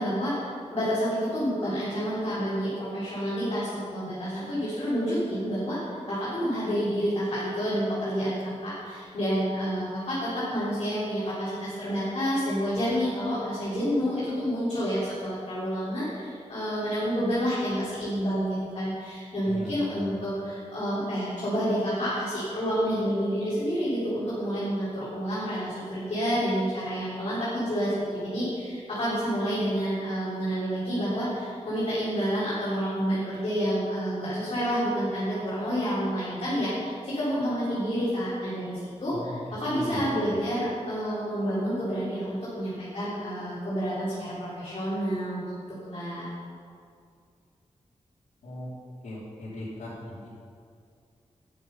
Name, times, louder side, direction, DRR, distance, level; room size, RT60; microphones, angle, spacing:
voice 1, 0.0-5.8 6.1-45.5 45.9-46.3, equal, 50° left, -11 dB, 3.9 m, -29 dB
voice 2, 39.1-39.4 39.7-40.1 48.4-48.7 49.0-50.3, left 1 dB, 90° left, -9 dB, 2.9 m, -38 dB
13.0 x 9.4 x 5.5 m, 2.3 s
wide cardioid pair, 175°, 12 cm